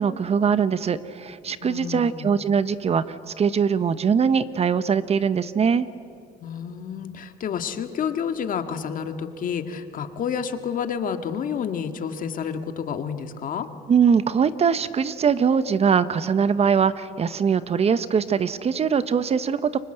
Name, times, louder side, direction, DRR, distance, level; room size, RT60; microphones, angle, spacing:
voice 1, 0.0-5.9 13.9-19.8, right 6 dB, 40° right, 14 dB, 0.9 m, -22 dB
voice 2, 1.6-2.3 6.4-13.7, left 7 dB, 55° left, 7 dB, 1.9 m, -29 dB
29.5 x 24.0 x 7.9 m, 2.5 s
cardioid pair, 110°, 17 cm